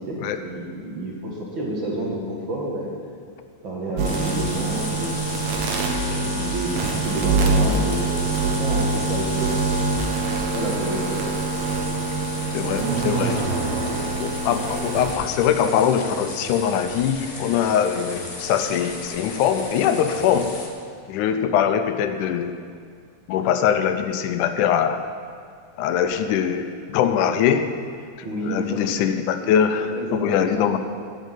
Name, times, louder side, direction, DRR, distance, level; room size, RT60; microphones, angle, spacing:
voice 1, 0.0-2.9 3.6-5.3 6.0-9.5 10.5-11.3 28.2-28.8 29.8-30.7, right 1 dB, 45° right, -2 dB, 2.0 m, -30 dB
sound 1, 4.0-20.7, left 2 dB, 50° left, 0.8 m, -35 dB
sound 2, 4.0-15.1, right 3 dB, 60° right, 1.7 m, -24 dB
voice 2, 12.5-13.6 14.2-20.6 21.1-22.5 23.3-25.0 25.8-27.7 28.4-30.8, left 8 dB, 85° left, 9 dB, 2.2 m, -22 dB
12.0 x 6.4 x 9.0 m, 2.2 s
omnidirectional pair, 3.5 m